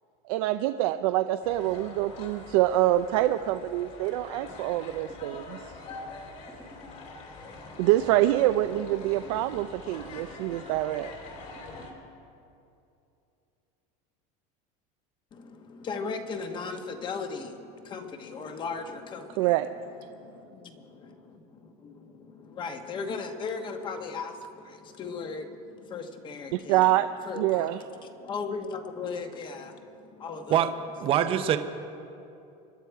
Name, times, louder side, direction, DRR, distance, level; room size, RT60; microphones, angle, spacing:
voice 1, 0.3-5.6 7.8-11.1 19.4-19.7 26.5-27.1 27.4-27.8, right 15 dB, 75° right, 0.5 m, -25 dB
sound 1, 1.4-11.9, left 3 dB, 40° left, 2.6 m, -44 dB
sound 2, 5.1-6.1 6.5-7.0 7.9-8.4 8.8-9.8 10.2-10.7 11.6-12.1, equal, 5° right, 1.3 m, -51 dB
voice 2, 15.3-21.2 21.8-21.9 22.3-30.7, left 4 dB, 25° left, 1.1 m, -37 dB
voice 3, 31.0-31.6, right 10 dB, 30° right, 0.7 m, -23 dB
26.0 x 11.5 x 4.7 m
cardioid pair, 165°, 19 cm